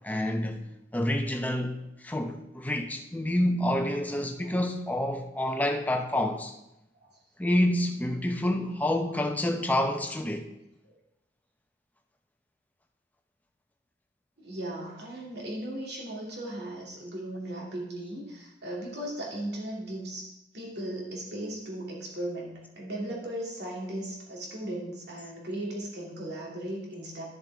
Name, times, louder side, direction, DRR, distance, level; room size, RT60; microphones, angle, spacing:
voice 1, 0.0-0.7 0.9-6.5 7.4-10.5, left 1 dB, 10° left, 0.8 m, -28 dB
voice 2, 14.4-20.2 20.5-27.2, right 1 dB, 60° right, 2.7 m, -37 dB
11.5 x 7.1 x 3.6 m
head